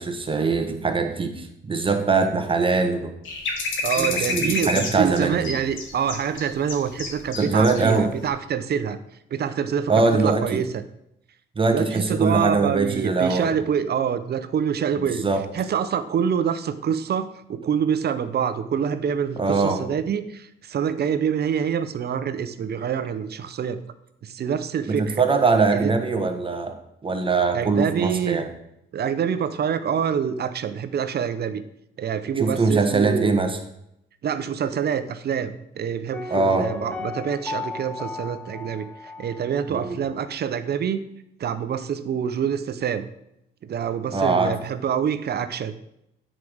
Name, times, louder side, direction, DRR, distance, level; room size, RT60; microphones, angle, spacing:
voice 1, 0.0-3.1 4.0-5.5 7.4-8.1 9.9-10.6 11.5-13.5 15.2-15.4 19.4-19.8 24.9-26.7 27.0-28.5 32.4-33.6 36.3-36.7 39.7-40.0 44.1-44.5, right 4 dB, 25° right, 5 dB, 1.4 m, -22 dB
sound 1, 3.3-7.8 8.2-8.3, left 3 dB, 75° left, 1.9 m, -29 dB
voice 2, 3.8-9.0 9.3-10.8 11.7-15.2 15.5-23.8 24.2-25.2 25.7-25.9 27.5-28.4 28.9-31.6 32.0-33.3 34.2-41.0 41.4-43.1 43.6-45.8, right 7 dB, 55° right, 11 dB, 0.7 m, -26 dB
Piano, 36.1-39.9 40.2-40.3, left 3 dB, 10° left, 0.9 m, -35 dB
9.2 x 4.9 x 6.3 m, 0.79 s
cardioid pair, 90°, 20 cm